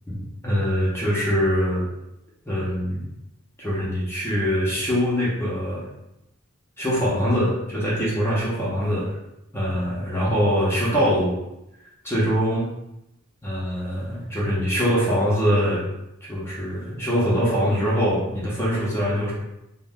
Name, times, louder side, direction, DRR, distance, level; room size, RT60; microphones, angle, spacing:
voice 1, 0.1-1.9 2.5-3.1 3.6-5.9 6.8-9.2 9.5-11.3 12.0-12.7 13.4-15.8 16.2-19.3, equal, 10° left, -7 dB, 0.7 m, -23 dB
2.9 x 2.1 x 3.5 m, 0.88 s
head